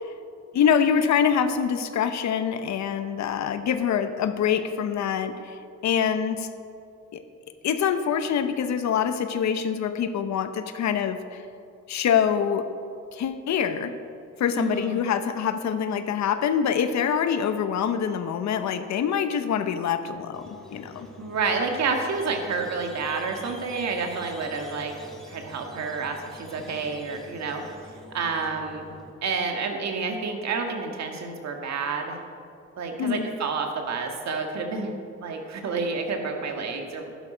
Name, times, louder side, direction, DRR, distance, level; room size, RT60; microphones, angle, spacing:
voice 1, 0.5-6.5 7.1-7.2 7.6-11.4 11.9-12.7 13.1-13.9 14.4-21.1 33.0-33.3, left 8 dB, 65° left, 10 dB, 0.9 m, -25 dB
voice 2, 14.6-15.0 21.2-24.9 25.3-28.9 29.2-32.2 32.8-34.9 35.2-37.1, right 4 dB, 60° right, 3 dB, 1.8 m, -29 dB
Squeak, 20.3-29.1, left 1 dB, ahead, 3.2 m, -46 dB
11.5 x 11.0 x 5.1 m, 2.5 s
cardioid pair, 90°, 30 cm